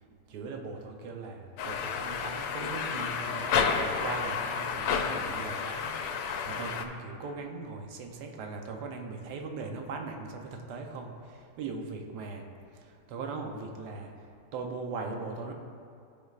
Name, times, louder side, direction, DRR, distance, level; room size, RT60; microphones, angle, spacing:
voice 1, 0.3-12.5 12.7-15.5, right 4 dB, 75° right, 3 dB, 1.3 m, -40 dB
sound 1, 1.6-6.9, left 6 dB, 85° left, 1.2 m, -31 dB
14.0 x 5.3 x 2.4 m, 2.3 s
omnidirectional pair, 1.8 m